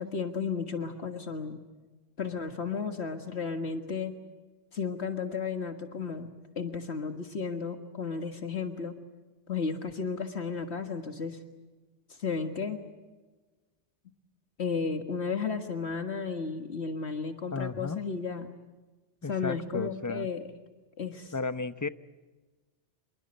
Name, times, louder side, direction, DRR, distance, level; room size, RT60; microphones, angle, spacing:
voice 1, 0.0-1.6 2.2-4.1 4.7-6.3 6.6-9.0 9.5-11.4 12.1-12.8 14.6-18.6 19.3-20.4 21.0-21.3, left 5 dB, 70° left, 7 dB, 1.9 m, -33 dB
voice 2, 17.5-18.0 19.2-20.3 21.3-21.9, left 4 dB, 20° left, 13 dB, 0.7 m, -33 dB
26.5 x 22.0 x 7.9 m, 1.2 s
omnidirectional pair, 1.2 m